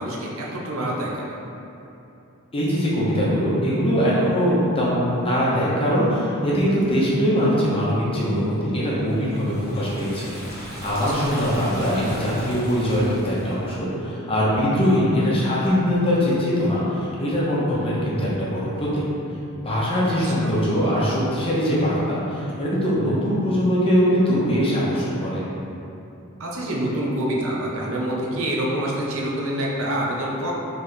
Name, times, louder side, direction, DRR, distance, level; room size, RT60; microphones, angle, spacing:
voice 1, 0.0-1.4 6.5-6.7 10.9-11.3 17.7-18.0 20.4-20.5 26.4-30.5, right 1 dB, 70° right, -3 dB, 0.7 m, -27 dB
voice 2, 2.5-10.3 10.6-19.0 19.6-25.4, equal, 25° left, -7 dB, 0.9 m, -22 dB
Liquid, 9.0-13.7, equal, 50° right, 1.3 m, -38 dB
4.3 x 3.4 x 3.3 m, 2.8 s
head